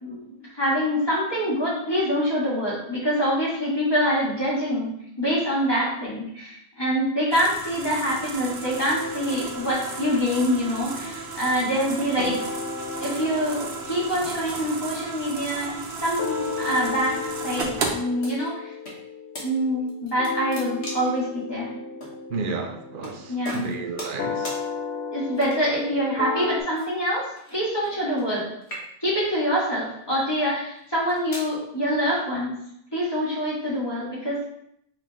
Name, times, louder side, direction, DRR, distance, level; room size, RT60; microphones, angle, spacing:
voice 1, 0.0-4.9 5.2-12.4 13.0-17.1 17.4-18.7 19.4-21.7 23.3-23.7 24.0-24.1 25.1-27.2 27.5-28.5 29.0-32.5 32.9-34.5, equal, 25° left, 2.0 m, -25 dB
sound 1, 7.3-17.9, right 4 dB, 90° right, 1.0 m, -34 dB
sound 2, 8.7-11.9 12.2-26.6, left 4 dB, 60° left, 0.7 m, -35 dB
sound 3, 18.2-19.0 19.3-19.5 19.9-21.2 22.0-22.1 23.0-23.2 23.4-24.2 24.4-24.6 25.3-25.8 26.7-28.4 28.6-29.2 29.9-30.1 30.8-31.5, equal, 80° left, 1.5 m, -38 dB
voice 2, 22.3-24.6, right 4 dB, 60° right, 0.7 m, -32 dB
4.8 x 3.4 x 3.1 m
omnidirectional pair, 1.1 m